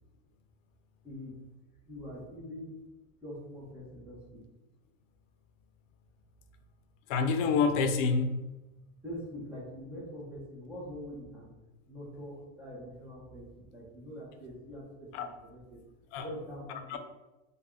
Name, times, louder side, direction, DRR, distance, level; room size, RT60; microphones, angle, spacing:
voice 1, 1.0-1.4 1.9-2.8 3.2-4.4 9.0-11.5 11.9-15.8 16.2-17.0, equal, 5° right, -6 dB, 0.6 m, -44 dB
voice 2, 7.1-8.4 15.1-15.3 16.1-16.3 16.7-17.0, left 5 dB, 80° left, 8 dB, 0.6 m, -28 dB
3.3 x 2.2 x 3.5 m, 1.0 s
supercardioid pair, 170°, 38 cm